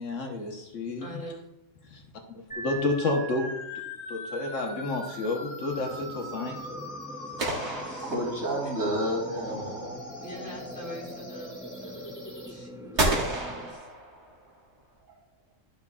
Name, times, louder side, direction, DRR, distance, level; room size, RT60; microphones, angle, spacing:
voice 1, 0.0-1.1 1.9-2.0 2.3-6.8, left 2 dB, 75° left, 2 dB, 1.5 m, -31 dB
voice 2, 1.0-1.4 7.8-8.1 8.6-8.7 10.2-12.1 12.5-13.9, equal, 40° left, -4 dB, 2.9 m, -43 dB
sound 1, 2.5-12.5, left 1 dB, 15° left, 1.5 m, -41 dB
sound 2, 5.7-13.7, right 1 dB, 5° right, 0.3 m, -44 dB
sound 3, 7.4-8.8 13.0-14.6, right 1 dB, 60° right, 1.9 m, -30 dB
voice 3, 8.0-10.0 15.1-15.2, equal, 75° right, -3 dB, 3.2 m, -30 dB
11.5 x 6.7 x 2.4 m, 0.85 s
omnidirectional pair, 1.3 m